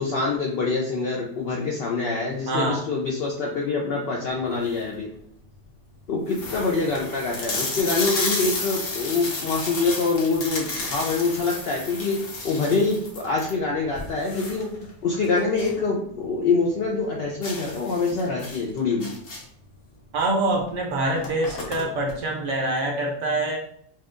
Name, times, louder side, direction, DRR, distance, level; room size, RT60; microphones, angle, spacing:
voice 1, 0.0-5.1 6.1-19.1, left 4 dB, 75° left, -2 dB, 0.5 m, -25 dB
voice 2, 2.5-2.8 20.1-23.6, right 2 dB, 65° right, 0 dB, 0.8 m, -25 dB
sound 1, 4.4-4.9 5.6-5.7 5.9-6.0 6.3-15.8 16.2-16.3 16.7-16.8 17.4-19.6 20.6-20.7 21.0-22.1, left 2 dB, 50° left, 0.8 m, -32 dB
4.3 x 2.3 x 2.4 m, 0.69 s
omnidirectional pair, 1.6 m